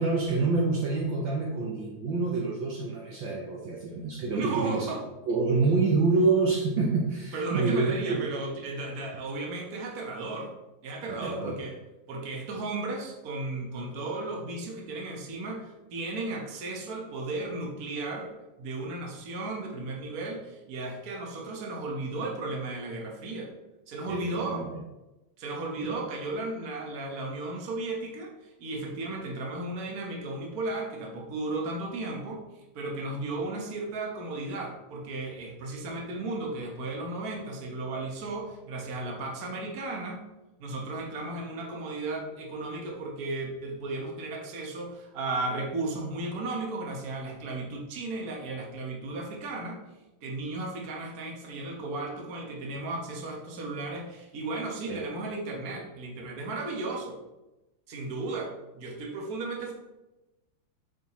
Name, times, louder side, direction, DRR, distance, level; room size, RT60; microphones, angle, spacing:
voice 1, 0.0-4.9 5.3-8.3 11.1-11.6 24.1-24.8 25.8-25.9 54.9-55.0, right 3 dB, 80° right, -2 dB, 1.0 m, -27 dB
voice 2, 4.3-5.0 7.3-10.5 10.8-11.8 12.1-18.3 18.6-23.5 23.9-24.6 25.4-28.3 28.6-32.4 32.7-40.2 40.6-49.8 50.2-57.2 57.9-59.7, right 2 dB, 55° right, 0 dB, 1.0 m, -35 dB
7.1 x 6.2 x 3.0 m, 1.0 s
omnidirectional pair, 3.3 m